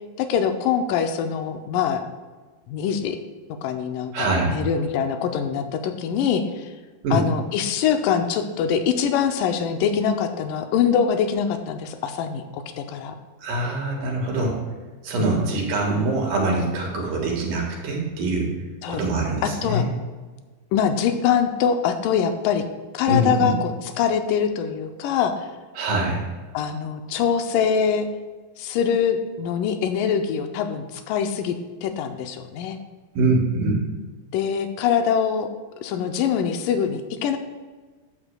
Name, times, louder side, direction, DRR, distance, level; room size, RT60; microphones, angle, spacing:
voice 1, 0.2-2.0 2.7-3.2 3.6-6.7 7.1-13.1 15.2-15.6 18.8-19.0 19.6-19.8 20.7-22.6 22.9-25.5 26.5-28.1 28.6-31.6 31.8-32.8 34.3-35.5 35.8-37.4, left 7 dB, 80° left, 7 dB, 2.0 m, -23 dB
voice 2, 4.1-4.6 7.0-7.2 13.4-14.6 15.0-18.5 18.9-19.9 23.1-23.5 25.8-26.3 33.1-33.8, right 2 dB, 70° right, -1 dB, 3.0 m, -23 dB
12.0 x 8.7 x 2.3 m, 1.4 s
omnidirectional pair, 4.2 m